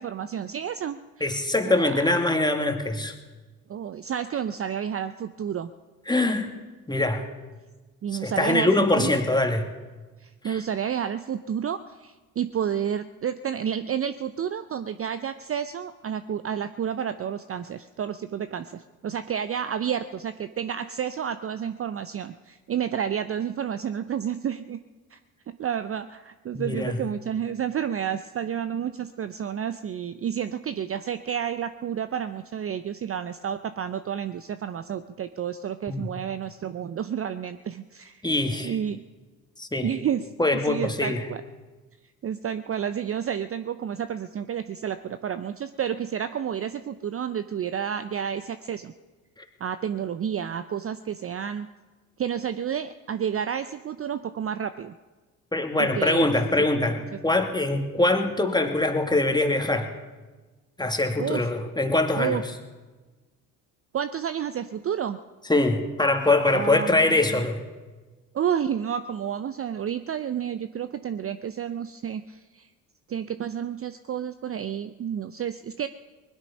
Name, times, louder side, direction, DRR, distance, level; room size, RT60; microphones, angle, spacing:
voice 1, 0.0-1.3 1.6-2.1 3.7-5.7 8.0-9.1 10.2-24.8 25.1-25.2 25.5-38.2 38.6-39.0 39.8-40.3 40.6-41.4 42.2-48.9 49.6-51.7 52.2-55.0 55.8-56.3 61.2-61.5 62.1-62.4 63.9-65.2 66.5-67.4 68.3-72.7 73.1-75.9, right 8 dB, 35° right, 11 dB, 0.6 m, -30 dB
voice 2, 1.2-3.1 6.1-6.5 6.9-7.2 8.2-9.7 10.4-10.6 26.5-27.0 35.9-36.1 38.2-38.8 39.6-39.9 40.4-41.3 55.5-59.9 60.8-62.4 65.5-67.6, left 2 dB, 10° left, 4 dB, 2.1 m, -23 dB
20.5 x 11.5 x 5.4 m, 1.3 s
hypercardioid pair, 50°, 42 cm